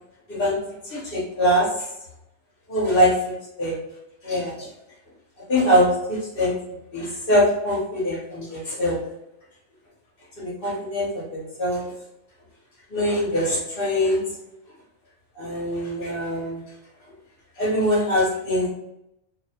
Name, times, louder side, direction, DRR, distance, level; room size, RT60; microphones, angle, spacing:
voice 1, 0.3-0.6 0.8-1.7 2.7-3.8 4.2-4.7 5.5-6.6 6.9-9.0 10.4-11.9 12.9-14.2 15.4-16.6 17.6-18.7, equal, 50° left, -5 dB, 1.0 m, -23 dB
2.7 x 2.2 x 2.8 m, 0.85 s
omnidirectional pair, 1.3 m